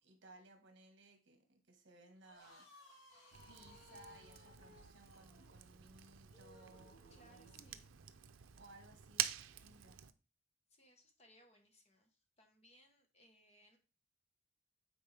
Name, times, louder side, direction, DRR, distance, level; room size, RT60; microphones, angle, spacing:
voice 1, 0.0-2.7 3.5-7.6 8.5-10.0, right 2 dB, 60° right, 5 dB, 1.5 m, -61 dB
sound 1, 2.2-7.8, left 1 dB, 80° left, 2.4 m, -63 dB
Fire, 3.3-10.1, right 11 dB, 85° right, 0.5 m, -47 dB
voice 2, 7.1-7.9 8.5-8.6 10.7-13.8, left 1 dB, 35° left, 4 dB, 1.2 m, -67 dB
9.1 x 4.3 x 3.4 m, 0.34 s
head